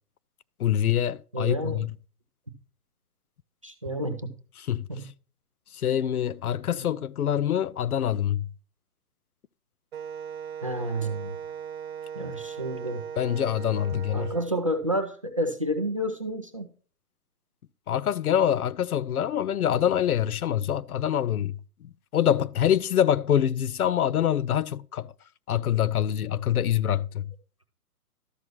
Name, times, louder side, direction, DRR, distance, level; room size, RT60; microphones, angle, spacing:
voice 1, 0.6-1.9 4.6-4.8 5.7-8.5 13.2-14.3 17.9-25.1 25.5-27.3, left 10 dB, 70° left, 0.6 m, -25 dB
voice 2, 1.3-1.8 3.6-4.3 4.9-5.1 6.7-6.9 10.6-11.4 12.2-13.0 14.1-16.7, right 1 dB, 25° right, 0.4 m, -30 dB
Wind instrument woodwind instrument, 9.9-14.5, right 8 dB, 45° right, 1.3 m, -38 dB
13.0 x 5.9 x 3.0 m
figure-of-eight pair, 135°, 46 cm